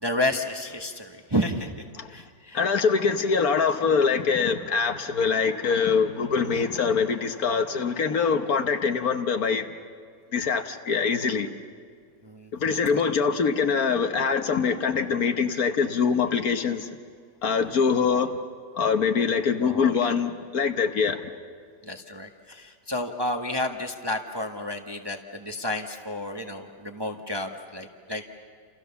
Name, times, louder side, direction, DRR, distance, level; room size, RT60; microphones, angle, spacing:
voice 1, 0.0-2.6 12.2-12.5 17.4-17.5 19.6-20.1 21.8-28.2, left 1 dB, 15° right, 4 dB, 1.1 m, -31 dB
voice 2, 2.5-9.7 10.3-11.5 12.5-16.9 17.4-18.4 18.7-21.2, left 5 dB, 60° left, 8 dB, 1.5 m, -24 dB
29.5 x 28.0 x 7.0 m, 2.1 s
omnidirectional pair, 1.9 m